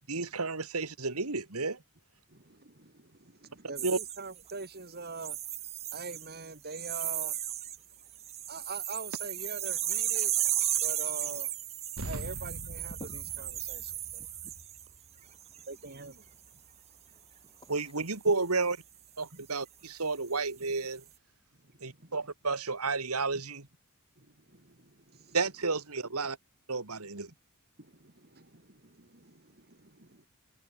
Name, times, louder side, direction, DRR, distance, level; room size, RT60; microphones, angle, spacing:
voice 1, 0.1-1.8 3.8-4.0 17.7-18.8 19.2-21.0 21.8-23.7 25.3-26.4 26.7-27.3, right 3 dB, 80° right, 2.4 m, -31 dB
voice 2, 2.3-5.4 5.9-7.4 8.5-10.3 10.8-11.5 12.0-13.0 13.4-13.9 15.7-16.2 19.3-19.5 21.8-22.2 24.2-25.4 26.9-27.2 27.8-30.3, right 4 dB, 45° right, 2.8 m, -44 dB
sound 1, 3.8-4.7 5.2-6.4 6.7-7.8 8.1-14.9 15.4-15.7, right 11 dB, 30° right, 0.6 m, -34 dB
sound 2, 12.0-16.8, equal, 65° right, 7.0 m, -45 dB
voice 3, 12.8-13.4 14.2-14.5 15.2-15.7 16.2-17.9, left 1 dB, 20° left, 4.0 m, -53 dB
head